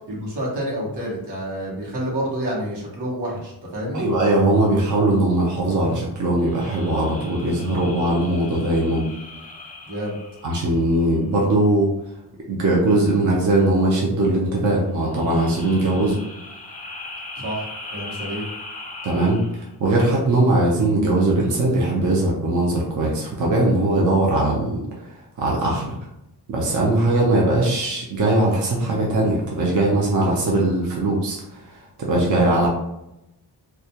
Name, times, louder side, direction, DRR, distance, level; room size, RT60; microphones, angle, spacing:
voice 1, 0.1-4.1 9.8-10.2 17.4-17.7 17.9-18.4, equal, 80° right, -4 dB, 1.0 m, -29 dB
voice 2, 3.9-9.1 10.4-11.9 12.5-16.2 19.0-26.0 26.5-32.7, right 2 dB, 50° right, -3 dB, 0.5 m, -20 dB
sound 1, 6.4-11.2 15.0-19.7, left 2 dB, 20° left, 0.4 m, -39 dB
2.3 x 2.2 x 2.7 m, 0.88 s
wide cardioid pair, 175°, 40 cm